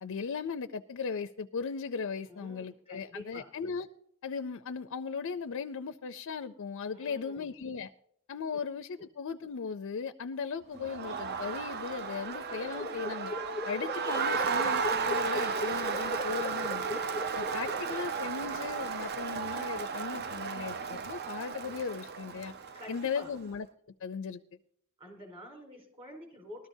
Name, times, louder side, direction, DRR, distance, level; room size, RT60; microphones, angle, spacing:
voice 1, 0.0-3.9 4.2-7.9 8.3-13.3 13.6-17.0 17.3-22.5 22.9-23.7 24.0-24.4, left 5 dB, 65° left, 10 dB, 0.5 m, -37 dB
voice 2, 2.3-3.5 6.9-7.5 16.6-17.0 22.7-23.3 25.0-26.7, left 1 dB, 30° right, 0 dB, 4.2 m, -48 dB
Crowd, 10.7-23.3, right 6 dB, 50° right, 0.5 m, -34 dB
sound 1, 12.0-18.5, left 2 dB, 15° left, 0.5 m, -39 dB
20.5 x 13.0 x 2.7 m, 0.70 s
head